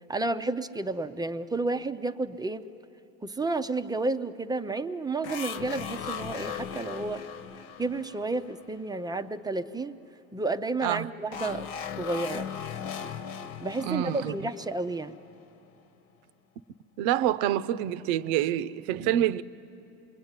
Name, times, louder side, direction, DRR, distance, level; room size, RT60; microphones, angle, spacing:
voice 1, 0.1-2.7 3.2-7.2 7.8-9.9 10.3-11.7 12.0-12.4 13.6-15.2, right 3 dB, 10° right, 0.6 m, -31 dB
sound 1, 5.2-9.1 11.3-15.7, left 7 dB, 65° left, 1.4 m, -38 dB
voice 2, 13.8-14.3 17.0-19.4, right 12 dB, 70° right, 0.8 m, -27 dB
26.0 x 22.0 x 9.7 m
supercardioid pair, 110°, 40 cm